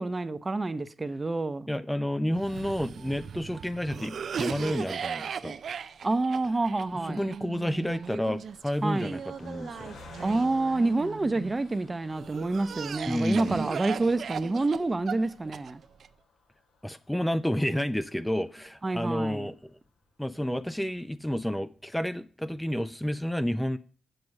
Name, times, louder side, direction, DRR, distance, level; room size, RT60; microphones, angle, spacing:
voice 1, 0.0-1.7 6.0-7.2 8.8-9.2 10.2-15.8 18.8-19.5, right 2 dB, 30° right, 0.8 m, -28 dB
voice 2, 1.7-5.6 7.0-9.9 13.1-13.6 16.8-19.7 20.2-23.8, equal, 5° left, 0.5 m, -30 dB
Cough, 2.3-11.6 12.1-16.1, right 7 dB, 65° right, 0.4 m, -38 dB
Car passing by, 5.5-20.1 20.6-20.7 21.0-21.1, left 3 dB, 80° left, 2.6 m, -56 dB
7.9 x 5.2 x 5.9 m
supercardioid pair, 60°, 0 cm